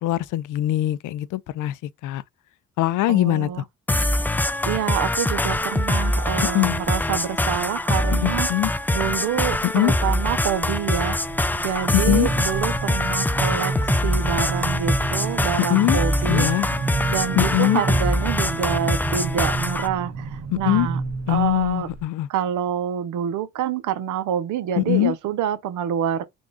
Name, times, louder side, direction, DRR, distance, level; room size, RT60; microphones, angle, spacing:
voice 1, 0.0-2.2 2.8-3.5 6.5-6.8 8.2-8.7 9.6-9.9 11.9-12.3 15.7-16.0 16.3-16.7 17.4-17.8 20.5-20.9 21.3-22.3 24.8-25.1, left 16 dB, 80° left, 0.5 m, -22 dB
voice 2, 3.1-3.6 4.6-8.5 8.9-11.2 11.6-16.5 17.1-21.0 21.3-21.9 22.3-26.2, right 9 dB, 85° right, 0.8 m, -27 dB
sound 1, 3.9-19.9, left 1 dB, 5° left, 0.3 m, -24 dB
sound 2, 5.3-5.8 6.3-6.9 7.5-8.4 8.8-9.1 9.5-22.0, right 4 dB, 55° right, 1.4 m, -31 dB
3.6 x 2.5 x 3.4 m
cardioid pair, 90°, 30 cm